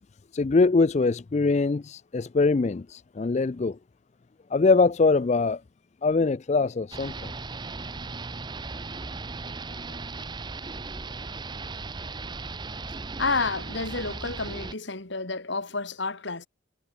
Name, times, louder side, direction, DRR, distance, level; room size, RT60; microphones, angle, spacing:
voice 1, 0.3-3.8 4.5-5.6 6.0-7.3, left 3 dB, 35° left, 0.4 m, -23 dB
sound 1, 6.9-14.7, right 3 dB, 20° right, 0.6 m, -37 dB
voice 2, 13.2-16.5, left 3 dB, 65° left, 2.4 m, -30 dB
head